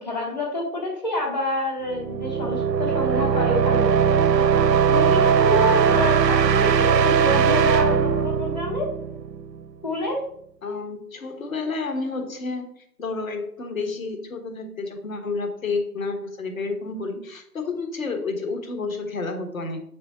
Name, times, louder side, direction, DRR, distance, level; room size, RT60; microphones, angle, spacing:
voice 1, 0.0-4.4 4.9-8.9 9.8-10.2, left 2 dB, 25° left, -3 dB, 1.2 m, -28 dB
sound 1, 1.9-9.6, right 7 dB, 85° right, 0.6 m, -20 dB
voice 2, 10.6-12.7 13.0-19.8, left 3 dB, 55° left, 5 dB, 1.4 m, -30 dB
7.6 x 3.5 x 4.2 m, 0.67 s
figure-of-eight pair, 155°, 49 cm